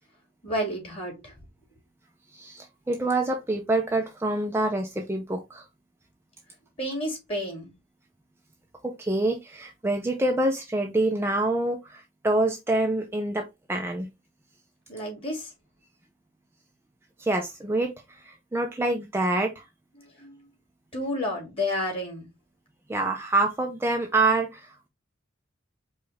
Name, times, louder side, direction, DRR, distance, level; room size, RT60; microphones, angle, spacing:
voice 1, 0.4-1.3 6.8-7.7 14.9-15.5 20.2-20.3 20.9-22.3, left 1 dB, 30° left, 2.5 m, -30 dB
voice 2, 2.3-5.6 8.8-14.1 17.2-19.6 22.9-24.9, right 2 dB, 10° right, 0.4 m, -26 dB
4.7 x 2.3 x 4.1 m
head